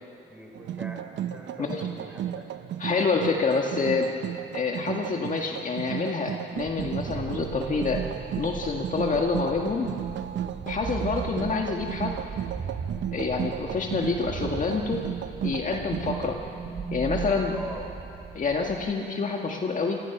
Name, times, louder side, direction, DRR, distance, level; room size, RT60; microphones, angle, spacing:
voice 1, 0.0-2.5 17.5-17.9, equal, 5° right, -1 dB, 6.0 m, -42 dB
sound 1, 0.5-16.3, right 10 dB, 70° right, 0.8 m, -35 dB
voice 2, 2.8-4.1 4.5-8.0 8.4-9.9 10.7-12.2 13.1-15.0 15.4-16.4 16.9-17.5 18.3-20.0, left 4 dB, 40° left, 2 dB, 1.7 m, -27 dB
sound 2, 6.6-18.9, right 6 dB, 50° right, 2.3 m, -38 dB
26.0 x 20.0 x 6.0 m, 2.6 s
cardioid pair, 90°, 20 cm